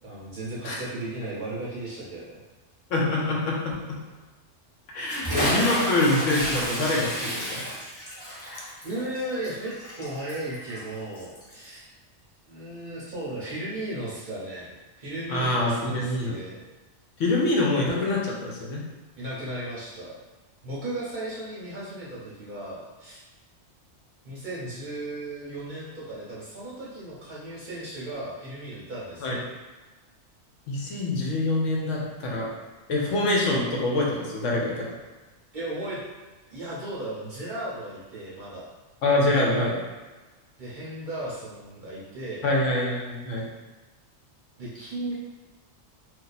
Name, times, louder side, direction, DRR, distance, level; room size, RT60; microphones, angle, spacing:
voice 1, 0.0-2.4 5.4-5.8 8.2-8.3 8.8-11.8 12.5-16.6 19.1-20.2 20.6-23.2 24.2-29.4 35.5-36.0 36.5-38.7 40.6-42.5 44.6-45.1, right 1 dB, 45° right, -7 dB, 0.7 m, -35 dB
voice 2, 2.9-3.9 4.9-7.6 15.3-16.3 17.2-18.9 29.2-29.4 30.7-32.5 32.9-34.9 39.0-39.8 42.4-43.5, left 2 dB, 75° left, -3 dB, 1.1 m, -25 dB
Bathtub (filling or washing) / Splash splatter, 5.1-11.6, equal, 15° left, 0.8 m, -31 dB
2.7 x 2.3 x 3.9 m, 1.2 s
omnidirectional pair, 1.3 m